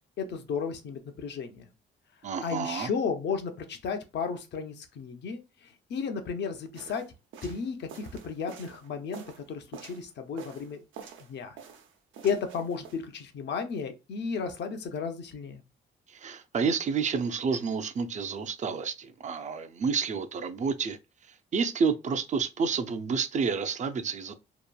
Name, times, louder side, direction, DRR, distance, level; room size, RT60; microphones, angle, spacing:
voice 1, 0.2-1.7 2.4-7.0 7.4-10.8 11.3-11.6 12.2-15.6, left 5 dB, 60° left, 0.6 m, -34 dB
voice 2, 2.2-2.9 16.1-21.0 21.5-24.3, right 5 dB, 35° right, 0.4 m, -29 dB
sound 1, 6.7-10.1 10.4-11.3 11.6-13.0, right 7 dB, 80° right, 0.6 m, -47 dB
2.9 x 2.4 x 2.2 m
cardioid pair, 90°, 20 cm